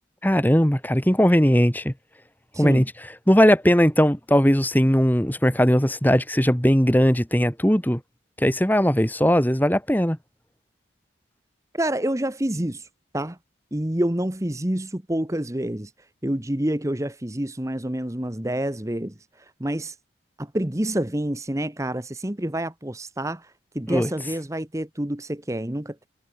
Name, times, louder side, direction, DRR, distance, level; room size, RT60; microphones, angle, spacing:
voice 1, 0.2-1.9 2.6-2.9 3.3-8.0 8.4-10.2 23.9-24.1, equal, 10° left, 2.0 m, -19 dB
voice 2, 2.5-2.9 11.7-12.9 13.1-13.4 13.7-15.9 16.2-20.0 20.4-26.1, right 1 dB, 15° right, 1.1 m, -28 dB
head